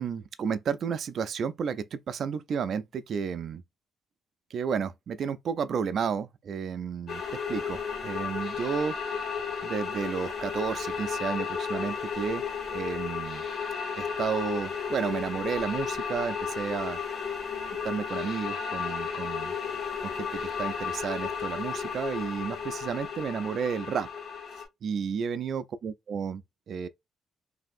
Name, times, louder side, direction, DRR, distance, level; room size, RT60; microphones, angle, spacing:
voice 1, 0.0-3.6 4.5-7.2 7.5-9.0 9.6-12.4 12.7-13.4 14.0-17.0 17.8-19.6 20.0-24.1 24.8-26.9, right 6 dB, 60° right, 0.4 m, -32 dB
sound 1, 7.1-24.6, left 6 dB, 65° left, 1.5 m, -33 dB
3.3 x 2.6 x 2.5 m
cardioid pair, 90°, 0 cm